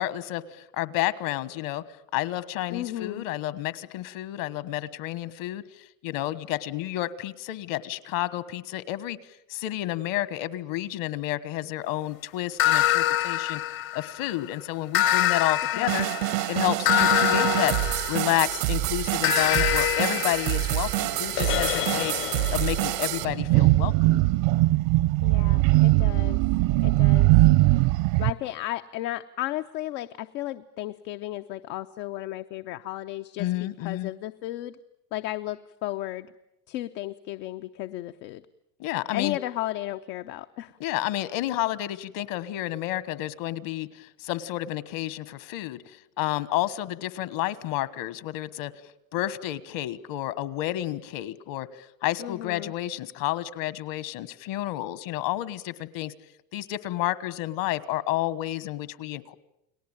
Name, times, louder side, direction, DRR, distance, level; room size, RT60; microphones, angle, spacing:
voice 1, 0.0-1.8 2.1-9.2 9.5-13.6 13.9-16.1 16.5-17.7 18.1-22.1 22.5-24.2 33.4-34.1 38.8-39.4 40.8-48.7 49.1-51.7 52.0-56.1 56.5-59.3, left 15 dB, 65° left, 16 dB, 1.5 m, -30 dB
voice 2, 2.7-3.2 15.7-16.1 25.2-26.4 26.8-27.3 28.2-33.5 33.8-34.8 35.1-36.3 36.7-38.4 39.1-40.8 52.2-52.7, left 15 dB, 80° left, 8 dB, 1.0 m, -34 dB
sound 1, 12.6-14.3 14.9-18.6 19.2-23.0, left 13 dB, 45° left, 0.9 m, -25 dB
sound 2, 15.9-23.3, right 18 dB, 85° right, 1.4 m, -27 dB
sound 3, 23.2-28.3, right 19 dB, 65° right, 0.9 m, -20 dB
30.0 x 19.0 x 9.0 m, 0.85 s
supercardioid pair, 115°, 49 cm